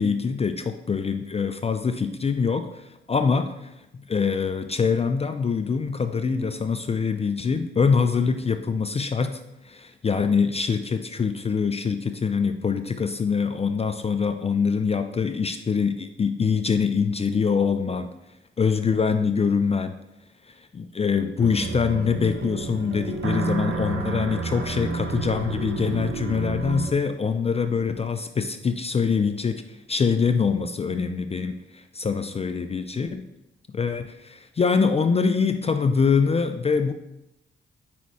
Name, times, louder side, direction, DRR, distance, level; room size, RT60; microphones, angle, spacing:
voice 1, 0.0-18.1 18.6-20.0 20.4-33.3 33.7-36.9, left 5 dB, 30° left, 8 dB, 0.4 m, -24 dB
sound 1, 21.4-26.9, right 4 dB, 65° right, 0.8 m, -30 dB
5.2 x 4.3 x 4.7 m, 0.88 s
cardioid pair, 80°, 21 cm